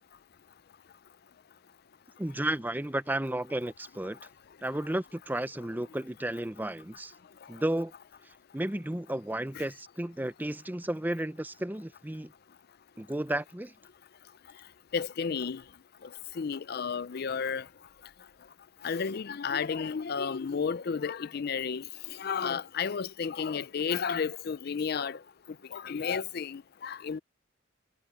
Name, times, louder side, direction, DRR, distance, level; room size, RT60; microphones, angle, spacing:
voice 1, 2.2-4.2 4.6-7.1 7.5-7.9 8.5-12.3 13.0-13.7, right 1 dB, 10° right, 0.6 m, -33 dB
voice 2, 14.9-15.6 16.4-17.6 18.8-21.8 22.2-25.2 25.7-27.2, left 6 dB, 55° left, 0.5 m, -32 dB
head